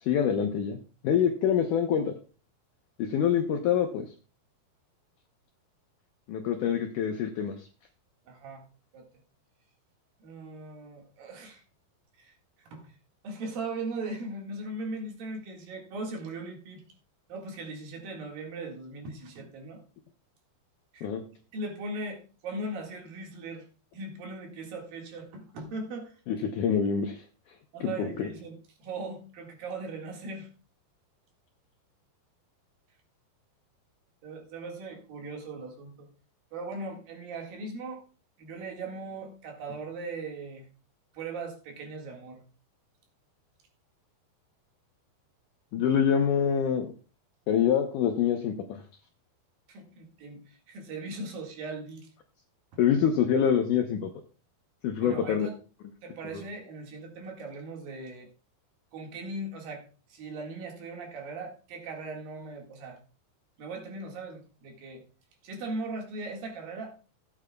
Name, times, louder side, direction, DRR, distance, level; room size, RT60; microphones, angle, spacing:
voice 1, 0.0-0.8 1.0-2.2 3.0-4.1 6.3-7.7 21.0-21.2 26.3-27.2 27.8-28.3 45.7-46.9 47.5-48.8 52.8-54.1 54.8-55.5, left 8 dB, 75° left, 5 dB, 1.8 m, -26 dB
voice 2, 8.3-8.6 8.9-9.0 10.2-11.6 12.2-12.9 13.2-16.8 17.3-19.8 20.9-21.1 21.5-23.7 23.9-26.2 27.7-30.5 34.2-36.1 36.5-38.0 38.4-40.7 41.1-42.5 49.7-52.1 52.7-52.8 55.0-55.6 56.0-58.3 58.9-59.8 60.1-63.0 63.6-65.0 65.4-66.9, right 2 dB, 65° right, 1 dB, 3.5 m, -39 dB
17.0 x 8.8 x 2.3 m, 0.35 s
omnidirectional pair, 4.6 m